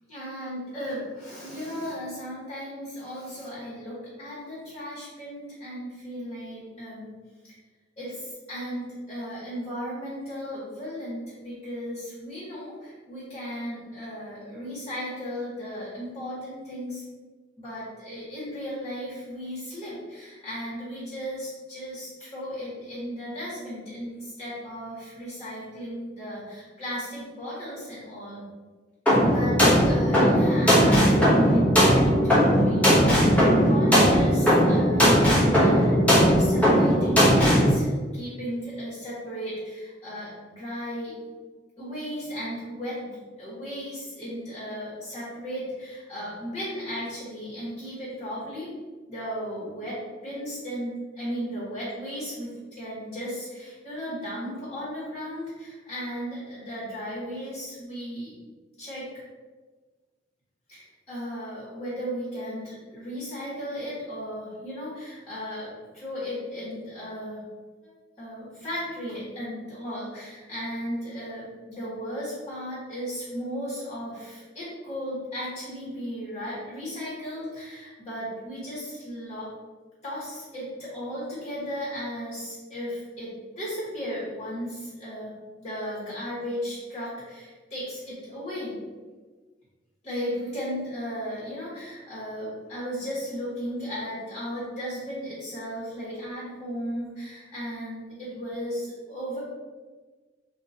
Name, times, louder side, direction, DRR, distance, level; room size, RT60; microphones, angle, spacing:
voice 1, 0.1-7.1 8.0-17.0 17.6-28.4 29.3-35.1 35.6-41.1 41.8-48.7 49.1-50.0 50.2-58.3 58.8-59.1 60.7-67.4 67.8-67.9 68.2-79.5 80.0-83.3 83.6-85.3 85.6-88.8 90.0-99.4, equal, 30° left, -10 dB, 1.4 m, -35 dB
sound 1, 29.1-37.7, equal, 10° left, 1.0 m, -19 dB
3.8 x 2.6 x 2.8 m, 1.4 s
head